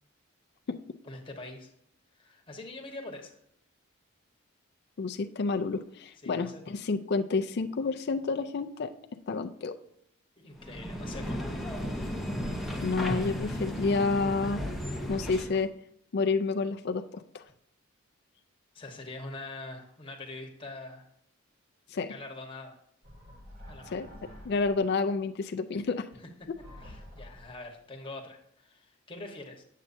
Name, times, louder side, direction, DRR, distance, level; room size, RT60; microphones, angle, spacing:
voice 1, 1.0-1.7 2.1-3.4 6.2-6.7 10.4-11.4 18.7-21.1 22.1-22.8 23.7-24.1 26.8-29.6, left 2 dB, 25° left, 1 dB, 1.1 m, -44 dB
voice 2, 5.0-8.9 9.3-9.8 12.8-14.6 15.1-15.7 16.1-17.4 21.9-22.1 23.9-24.1 24.4-26.1, left 4 dB, 50° left, 6 dB, 0.4 m, -29 dB
sound 1, 10.6-15.6, equal, ahead, 0.7 m, -34 dB
sound 2, 23.0-25.0 26.4-27.8, equal, 45° right, 2.1 m, -49 dB
8.3 x 7.3 x 2.6 m, 0.73 s
head